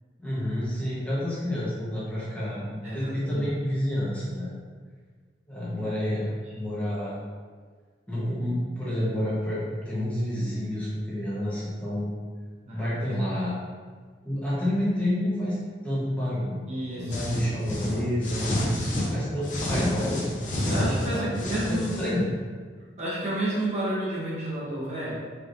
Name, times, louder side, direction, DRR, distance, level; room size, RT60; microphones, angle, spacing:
voice 1, 0.2-4.5 5.5-6.2 6.5-7.2 8.1-12.1 12.7-13.5 14.2-15.6 15.8-16.6 17.0-20.3 21.1-22.3, left 1 dB, 10° left, -10 dB, 1.1 m, -29 dB
voice 2, 2.8-3.5 5.8-6.3 12.7-12.9 16.7-17.1 20.7-22.0 23.0-25.2, right 1 dB, 40° right, -7 dB, 1.1 m, -31 dB
sound 1, 17.1-19.1 19.4-22.1, left 1 dB, 45° left, 0.7 m, -29 dB
4.6 x 3.3 x 2.6 m, 1.6 s
head